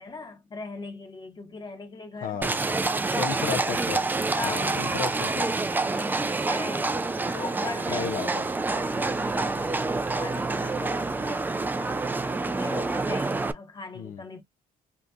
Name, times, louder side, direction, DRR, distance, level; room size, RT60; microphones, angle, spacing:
voice 1, 0.0-2.4 3.1-3.5 4.3-4.7 5.8-8.1 8.4-14.4, left 3 dB, 25° left, 1.0 m, -40 dB
voice 2, 2.2-2.6 3.2-4.1 4.4-5.5 7.9-8.5 14.0-14.2, left 7 dB, 60° left, 0.6 m, -33 dB
Livestock farm animals working animals, 2.4-13.5, right 3 dB, 10° right, 0.3 m, -27 dB
2.8 x 2.4 x 3.4 m
cardioid pair, 110°, 17 cm